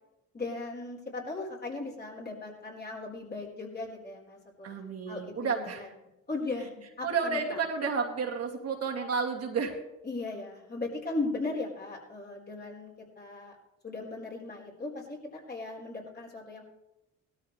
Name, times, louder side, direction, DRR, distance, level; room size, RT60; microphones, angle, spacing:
voice 1, 0.3-5.9 6.3-7.6 10.0-13.6 13.8-16.6, left 3 dB, 35° left, -2 dB, 4.4 m, -37 dB
voice 2, 4.6-5.8 7.0-9.8, right 5 dB, 55° right, -1 dB, 2.5 m, -31 dB
18.0 x 13.0 x 3.3 m, 0.95 s
cardioid pair, 90°, 30 cm